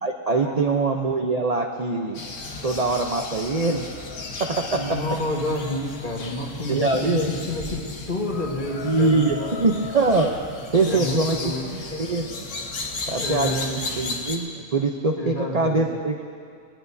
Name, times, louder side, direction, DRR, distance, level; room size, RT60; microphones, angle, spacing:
voice 1, 0.0-2.2 2.6-3.9 4.4-5.0 6.7-7.3 8.8-10.3 10.7-11.4 11.6-12.5 13.1-16.2, right 3 dB, 40° right, 2 dB, 0.6 m, -23 dB
sound 1, 2.1-14.4, left 3 dB, 80° left, 1.7 m, -34 dB
voice 2, 4.7-9.6 10.8-11.6 13.2-13.7 15.2-15.9, left 1 dB, 35° left, -1 dB, 1.7 m, -29 dB
20.0 x 19.0 x 2.7 m, 2.3 s
omnidirectional pair, 1.6 m